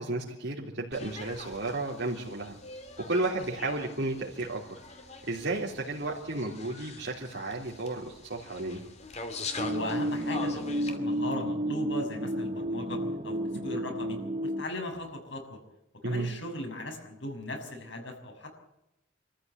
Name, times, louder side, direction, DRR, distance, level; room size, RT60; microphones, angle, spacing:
voice 1, 0.0-2.6 3.1-4.6 5.2-8.8 16.0-16.3, right 2 dB, 60° right, -4 dB, 3.5 m, -33 dB
sound 1, 0.9-11.0, left 3 dB, 35° left, 2.6 m, -43 dB
sound 2, 9.6-14.6, equal, 30° right, 0.8 m, -32 dB
voice 2, 9.7-15.6 16.0-18.5, left 1 dB, 65° left, 3 dB, 6.4 m, -38 dB
25.0 x 14.5 x 9.4 m, 0.86 s
head